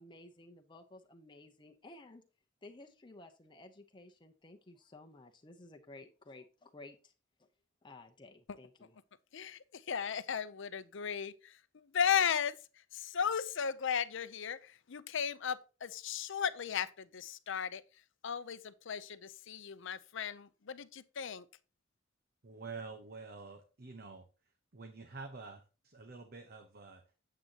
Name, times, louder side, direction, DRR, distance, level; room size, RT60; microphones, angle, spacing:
voice 1, 0.0-2.2 2.6-7.1 7.8-8.9, left 2 dB, 25° left, 0.8 m, -54 dB
voice 2, 9.3-17.8 18.2-21.5, left 7 dB, 65° left, 0.6 m, -36 dB
voice 3, 22.4-24.2 24.7-27.0, right 4 dB, 50° right, 1.0 m, -48 dB
9.1 x 7.7 x 2.9 m
head